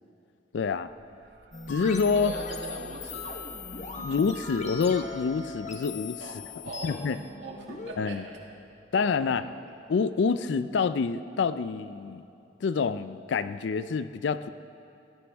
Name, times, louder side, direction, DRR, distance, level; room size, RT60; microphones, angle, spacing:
voice 1, 0.5-0.9 1.7-2.3 4.0-6.3 6.8-7.2 8.0-8.2 8.9-9.5 9.9-12.3 12.6-14.5, left 5 dB, 70° left, 13 dB, 0.4 m, -27 dB
sound 1, 0.9-10.1, right 2 dB, 65° right, 0.7 m, -52 dB
sound 2, 1.5-7.9, left 4 dB, 40° left, 1.2 m, -40 dB
voice 2, 2.1-3.5 6.2-6.4 6.6-6.9 7.4-8.3 8.9-9.6, right 2 dB, 80° right, -1 dB, 2.0 m, -41 dB
17.0 x 16.0 x 3.5 m, 2.6 s
head